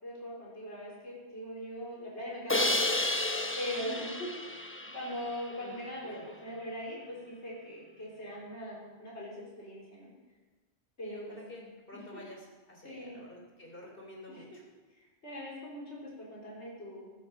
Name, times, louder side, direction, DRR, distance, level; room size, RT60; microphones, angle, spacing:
voice 1, 0.0-3.0 3.5-10.1 11.0-11.4 12.1-12.2 12.8-13.2 14.3-14.4 14.9-17.2, equal, 90° left, -4 dB, 4.5 m, -41 dB
Crash cymbal, 2.5-5.6, left 1 dB, 15° left, 0.7 m, -32 dB
voice 2, 5.6-6.3 11.0-14.6, left 1 dB, 55° left, -1 dB, 3.3 m, -49 dB
15.0 x 8.3 x 7.0 m, 1.3 s
omnidirectional pair, 1.1 m